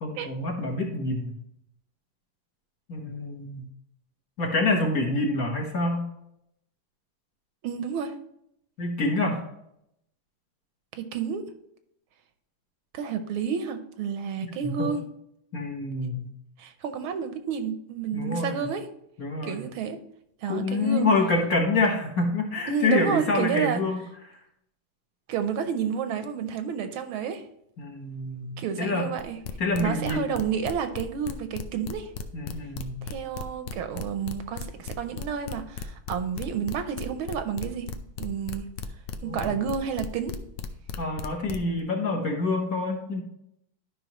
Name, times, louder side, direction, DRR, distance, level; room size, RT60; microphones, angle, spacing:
voice 1, 0.0-1.3 2.9-3.7 4.4-6.0 8.8-9.4 14.6-14.9 15.5-16.3 18.1-18.6 19.2-19.6 20.5-24.0 27.8-29.0 29.6-30.3 32.3-33.1 39.2-39.5 41.0-43.2, left 2 dB, 50° left, 0 dB, 1.3 m, -27 dB
voice 2, 7.6-8.1 10.9-11.5 12.9-15.0 16.6-18.9 19.4-20.0 20.4-21.1 22.7-23.8 25.3-27.5 28.6-29.4 29.8-32.1 33.0-37.9 38.2-38.6 39.2-40.3, right 7 dB, 75° right, 9 dB, 1.4 m, -30 dB
sound 1, 29.2-41.8, left 6 dB, 85° left, 1.6 m, -35 dB
12.0 x 5.4 x 2.9 m, 0.77 s
omnidirectional pair, 2.4 m